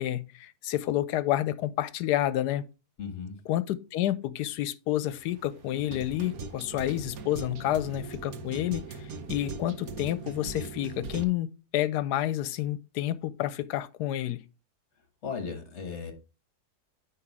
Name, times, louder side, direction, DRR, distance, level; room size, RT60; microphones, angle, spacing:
voice 1, 0.0-2.6 3.5-8.8 9.3-11.5 11.7-14.4, left 13 dB, 85° left, 1.2 m, -29 dB
voice 2, 3.0-3.4 15.2-16.1, left 6 dB, 45° left, 1.5 m, -36 dB
sound 1, 5.1-11.2, right 4 dB, 65° right, 1.2 m, -40 dB
9.7 x 3.3 x 4.7 m
omnidirectional pair, 1.7 m